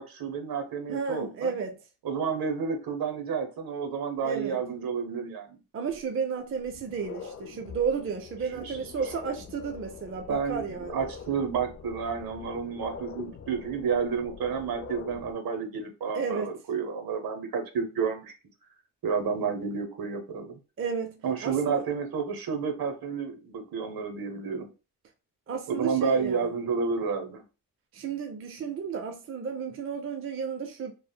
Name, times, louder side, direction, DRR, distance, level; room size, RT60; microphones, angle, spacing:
voice 1, 0.0-1.5 2.0-5.6 8.5-8.8 10.3-18.3 19.0-20.5 21.2-24.7 25.7-27.4, right 6 dB, 60° right, 0.8 m, -30 dB
voice 2, 0.9-1.8 4.2-4.6 5.7-10.9 16.1-16.5 20.8-21.1 21.4-21.8 25.5-26.5 27.9-30.9, right 6 dB, 35° right, 0.5 m, -32 dB
sound 1, 5.9-6.0 6.5-15.3, left 6 dB, 40° left, 0.4 m, -44 dB
3.3 x 2.0 x 2.2 m
cardioid pair, 75°, 40 cm